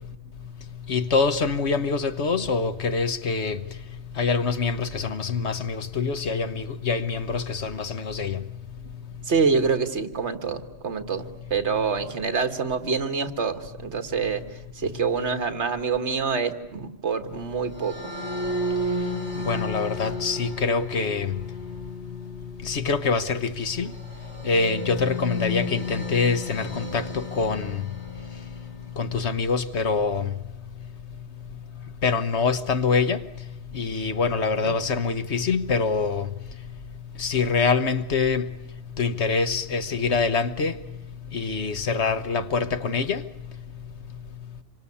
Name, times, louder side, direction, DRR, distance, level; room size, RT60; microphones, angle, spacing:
voice 1, 0.9-3.6 4.2-8.4 19.5-21.3 22.7-23.9 24.5-27.7 29.0-30.2 32.0-33.2 33.7-36.2 37.2-38.4 39.0-40.7 41.3-43.2, left 4 dB, 70° left, 1.4 m, -25 dB
voice 2, 9.2-14.4 14.7-18.0 34.6-34.8, right 5 dB, 70° right, 1.8 m, -26 dB
sound 1, 17.7-29.0, left 2 dB, 20° right, 7.9 m, -33 dB
27.0 x 24.5 x 8.5 m
omnidirectional pair, 1.2 m